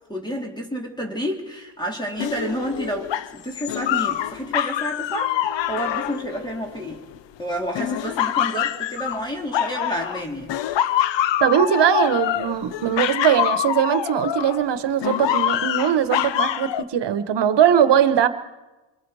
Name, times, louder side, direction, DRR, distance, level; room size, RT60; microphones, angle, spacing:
voice 1, 0.1-7.0 7.4-10.5, equal, 10° left, 3.0 m, -30 dB
sound 1, 2.2-7.2 7.8-10.2 10.5-14.6 15.0-16.8, left 11 dB, 70° left, 0.8 m, -25 dB
voice 2, 11.4-18.3, right 9 dB, 65° right, 1.3 m, -20 dB
26.5 x 21.5 x 4.9 m
cardioid pair, 90°, 45 cm